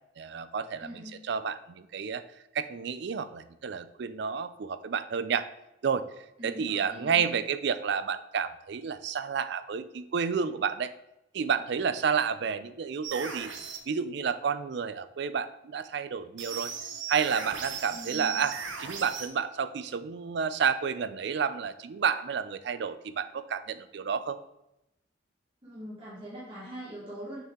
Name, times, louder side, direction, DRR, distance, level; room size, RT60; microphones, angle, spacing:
voice 1, 0.2-2.2 2.5-5.5 5.8-6.1 6.4-10.9 11.3-13.5 13.9-16.7 17.1-24.4, right 6 dB, 60° right, 13 dB, 0.4 m, -30 dB
voice 2, 0.8-1.2 6.4-7.3 17.9-18.4 25.6-27.4, equal, 30° right, -8 dB, 1.6 m, -42 dB
sound 1, 13.0-13.8 16.4-19.3, right 6 dB, 80° right, 0.9 m, -37 dB
6.6 x 4.5 x 3.6 m, 0.88 s
head